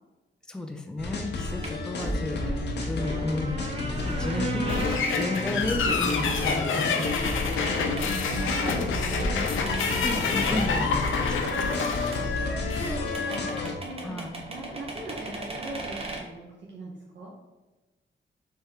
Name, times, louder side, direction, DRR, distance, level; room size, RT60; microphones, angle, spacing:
voice 1, 0.5-2.4 2.9-3.7 3.9-7.1 10.0-11.8 14.0-14.4, left 1 dB, 5° left, 4 dB, 0.4 m, -33 dB
sound 1, 1.0-13.7, left 3 dB, 60° left, 0.8 m, -31 dB
sound 2, 1.6-10.7 11.1-11.2 11.4-11.5 11.8-11.9 12.1-12.2 12.4-12.5 12.8-12.9 13.1-16.2, right 2 dB, 30° right, 0.8 m, -35 dB
voice 2, 2.3-2.9 6.4-6.5 7.1-9.4 12.1-13.5 13.8-17.3, right 2 dB, 65° right, -4 dB, 0.8 m, -40 dB
sound 3, 4.7-13.0, left 5 dB, 90° left, 0.6 m, -29 dB
3.5 x 3.4 x 4.4 m, 1.1 s
wide cardioid pair, 135°, 20 cm